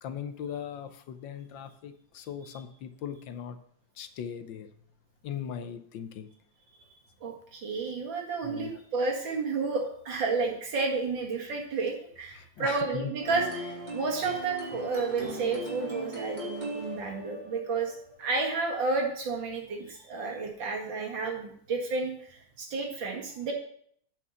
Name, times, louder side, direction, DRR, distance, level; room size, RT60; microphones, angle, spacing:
voice 1, 0.0-3.6 4.0-4.7 5.2-6.3 8.4-8.7 12.3-13.1, left 8 dB, 75° left, 10 dB, 1.5 m, -39 dB
voice 2, 7.2-17.9 18.2-23.5, right 4 dB, 70° right, 1 dB, 2.5 m, -31 dB
sound 1, 13.2-18.7, equal, 20° right, 3.1 m, -39 dB
8.6 x 5.4 x 6.9 m, 0.64 s
omnidirectional pair, 2.1 m